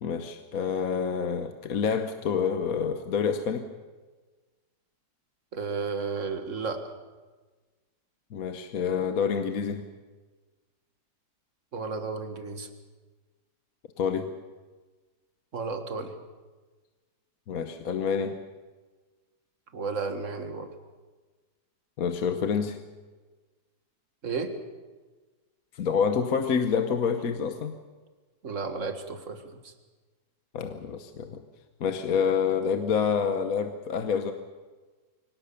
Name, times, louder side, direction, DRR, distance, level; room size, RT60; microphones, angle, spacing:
voice 1, 0.0-3.6 8.3-9.8 14.0-14.3 17.5-18.4 22.0-22.8 25.7-27.8 30.5-31.4 31.8-34.3, left 6 dB, 55° left, 7 dB, 1.3 m, -27 dB
voice 2, 5.5-6.9 11.7-12.7 15.5-16.1 19.7-20.7 24.2-24.5 28.4-29.7, right 4 dB, 40° right, 7 dB, 1.9 m, -33 dB
24.0 x 18.0 x 7.0 m, 1.3 s
omnidirectional pair, 2.1 m